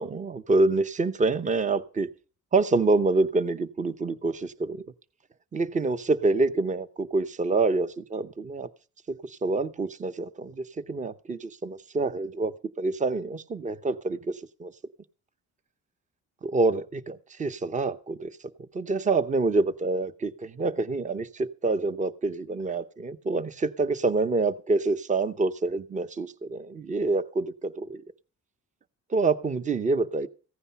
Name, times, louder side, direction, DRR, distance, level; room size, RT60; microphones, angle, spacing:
voice 1, 0.0-2.1 2.5-4.8 5.5-8.7 9.1-14.7 16.4-18.3 18.7-28.0 29.1-30.3, right 3 dB, 25° right, 15 dB, 0.8 m, -27 dB
15.5 x 9.8 x 5.6 m, 0.38 s
cardioid pair, 90°, 30 cm